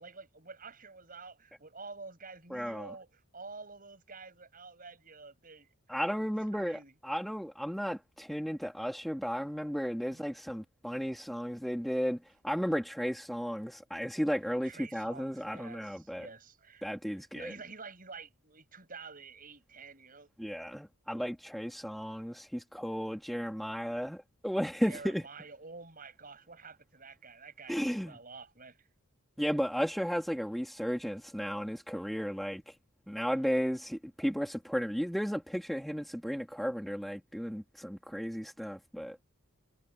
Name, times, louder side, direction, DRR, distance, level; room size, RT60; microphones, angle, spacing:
voice 1, 0.0-6.3 6.5-6.9 10.1-10.3 14.6-20.3 24.8-28.9, right 4 dB, 40° right, 7.1 m, -49 dB
voice 2, 2.5-2.9 5.9-16.3 16.8-17.5 20.4-25.2 27.7-28.2 29.4-32.7 33.1-39.2, equal, ahead, 3.2 m, -34 dB
head